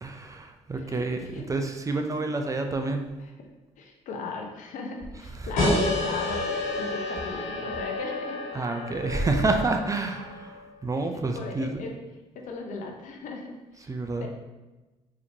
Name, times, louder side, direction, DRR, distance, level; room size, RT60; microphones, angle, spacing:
voice 1, 0.0-3.1 5.4-5.5 8.5-11.8 13.9-14.3, right 3 dB, 25° right, 4 dB, 0.5 m, -28 dB
voice 2, 0.8-1.5 1.9-2.0 3.8-8.4 11.3-11.9 12.3-13.9 14.2-14.3, left 4 dB, 70° left, 2 dB, 0.6 m, -37 dB
sound 1, 5.6-10.8, left 2 dB, 85° left, 1.1 m, -30 dB
4.0 x 2.9 x 2.7 m, 1.1 s
supercardioid pair, 65°, 14 cm